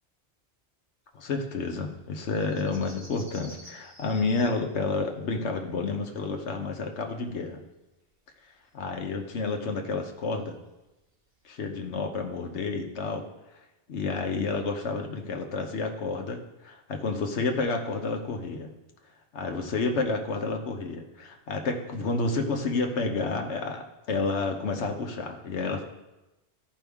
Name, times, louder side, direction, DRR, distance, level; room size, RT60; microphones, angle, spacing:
voice 1, 1.1-7.6 8.7-10.6 11.4-13.3 13.9-18.7 19.3-25.8, left 3 dB, 85° left, 3 dB, 1.3 m, -30 dB
sound 1, 1.6-7.6 7.8-11.5, equal, 30° right, 1.9 m, -52 dB
14.0 x 5.3 x 3.5 m, 1.0 s
omnidirectional pair, 1.1 m